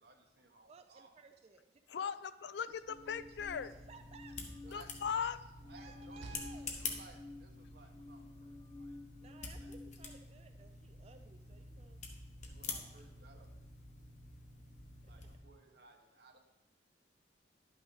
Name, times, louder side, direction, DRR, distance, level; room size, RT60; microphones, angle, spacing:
voice 1, 0.0-1.1 2.7-2.8 4.7-5.0 5.7-6.5 6.7-9.0 9.5-9.7 12.4-13.7 15.1-16.4, right 3 dB, 65° right, 3 dB, 1.1 m, -60 dB
voice 2, 0.7-1.6 1.9-2.1 3.5-4.4 4.6-4.9 5.7-6.7 9.2-12.1 15.0-15.1, right 4 dB, 35° right, 7 dB, 0.4 m, -58 dB
voice 3, 1.9-3.7 4.7-5.4, left 7 dB, 75° left, 14 dB, 0.4 m, -38 dB
sound 1, 2.6-15.4, left 4 dB, 45° left, 1.1 m, -48 dB
Slam, 2.8-7.5, right 2 dB, 90° right, 0.6 m, -58 dB
sound 2, 2.9-5.2 5.6-10.2, left 2 dB, 20° left, 0.5 m, -53 dB
11.0 x 5.8 x 4.0 m, 1.0 s
head